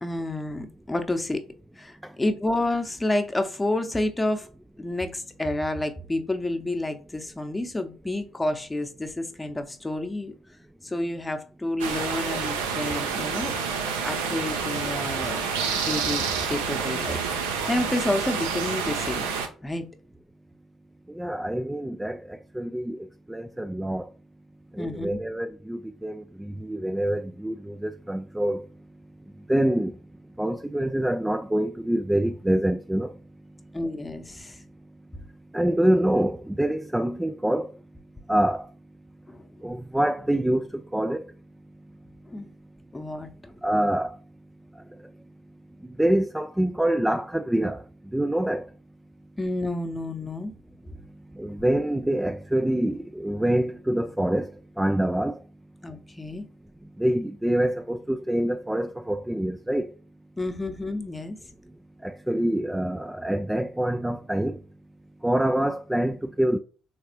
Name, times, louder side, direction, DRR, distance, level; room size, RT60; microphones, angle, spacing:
voice 1, 0.0-1.4 1.8-4.5 4.8-10.3 10.8-13.5 14.0-19.3 19.6-19.8 24.8-25.2 33.7-34.6 39.3-39.5 42.3-42.5 42.9-43.3 49.4-50.5 55.8-56.5 60.4-61.4, left 1 dB, 15° left, 0.8 m, -29 dB
sound 1, 11.8-19.5, right 6 dB, 75° right, 0.5 m, -28 dB
voice 2, 21.1-24.1 24.7-28.7 29.5-30.0 30.4-33.2 35.5-37.8 38.3-38.7 39.6-41.3 43.6-44.2 44.8-45.1 45.8-47.8 48.1-48.7 51.3-55.4 57.0-59.9 62.0-64.6 65.2-66.6, right 1 dB, 10° right, 0.3 m, -26 dB
4.0 x 3.3 x 2.9 m
figure-of-eight pair, 45°, 0 cm